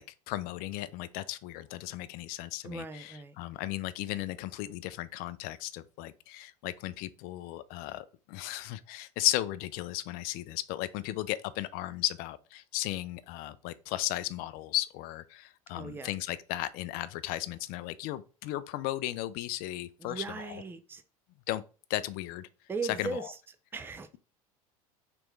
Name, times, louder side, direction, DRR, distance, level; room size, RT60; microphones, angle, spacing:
voice 1, 0.0-20.6 21.5-21.6 21.9-22.5 23.0-23.3, left 15 dB, 55° left, 0.4 m, -35 dB
voice 2, 2.6-3.4 15.7-16.1 20.0-21.0 22.7-23.4 23.7-24.2, right 4 dB, 10° right, 0.4 m, -38 dB
3.4 x 3.0 x 3.1 m
hypercardioid pair, 85°, 18 cm